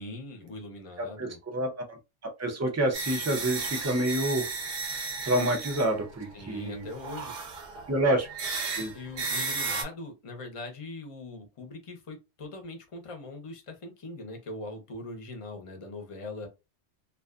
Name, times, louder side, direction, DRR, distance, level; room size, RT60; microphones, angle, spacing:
voice 1, 0.0-1.4 6.3-7.3 8.9-16.5, left 2 dB, 35° left, 0.7 m, -41 dB
voice 2, 1.0-4.5 5.2-6.9 7.9-8.3 8.8-8.9, right 1 dB, 25° right, 0.4 m, -28 dB
sound 1, 2.9-6.6 6.9-9.8, right 4 dB, 55° right, 0.7 m, -34 dB
2.4 x 2.4 x 2.3 m
omnidirectional pair, 1.2 m